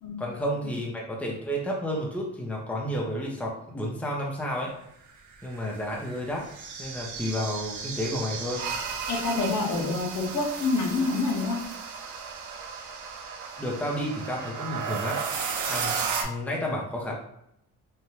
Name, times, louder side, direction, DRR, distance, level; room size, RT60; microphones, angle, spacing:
voice 1, 0.2-4.7 5.4-6.5 6.8-8.6 13.6-15.2 15.7-15.9 16.2-17.2, equal, 5° left, -2 dB, 0.7 m, -31 dB
sound 1, 5.3-16.2, right 6 dB, 75° right, 0.6 m, -34 dB
voice 2, 9.1-11.6, left 3 dB, 65° left, -1 dB, 0.8 m, -27 dB
2.7 x 2.2 x 3.1 m, 0.77 s
cardioid pair, 90°, 30 cm